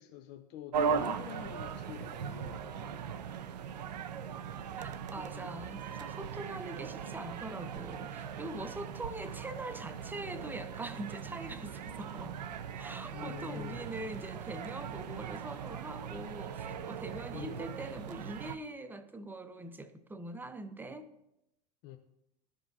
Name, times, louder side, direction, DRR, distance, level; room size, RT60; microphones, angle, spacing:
voice 1, 0.0-3.0 5.2-5.3 13.1-13.8 17.3-17.7 21.8-22.0, left 10 dB, 55° left, 6 dB, 0.6 m, -46 dB
sound 1, 0.7-18.6, right 6 dB, 85° right, 0.5 m, -39 dB
voice 2, 4.8-12.4 12.8-21.1, right 2 dB, 10° right, 10 dB, 0.6 m, -43 dB
12.5 x 5.0 x 2.7 m, 0.84 s
hypercardioid pair, 90°, 21 cm